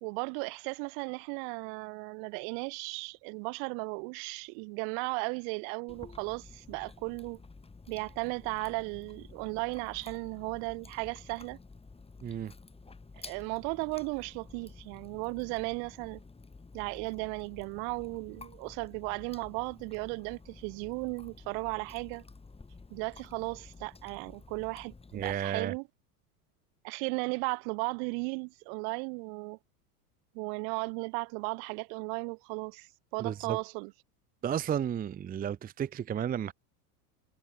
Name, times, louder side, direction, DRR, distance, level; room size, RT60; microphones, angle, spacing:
voice 1, 0.0-7.4 7.9-11.6 13.2-16.2 16.7-22.2 22.9-25.8 26.8-29.6 30.3-33.9, right 40 dB or more, 60° right, 2.5 m, -36 dB
Chewing mastication, 5.9-25.3, left 3 dB, 10° left, 4.2 m, -52 dB
voice 2, 12.2-12.5 25.1-25.7 33.2-33.6 34.4-36.5, right 9 dB, 20° right, 0.7 m, -33 dB
hypercardioid pair, 100°, 46 cm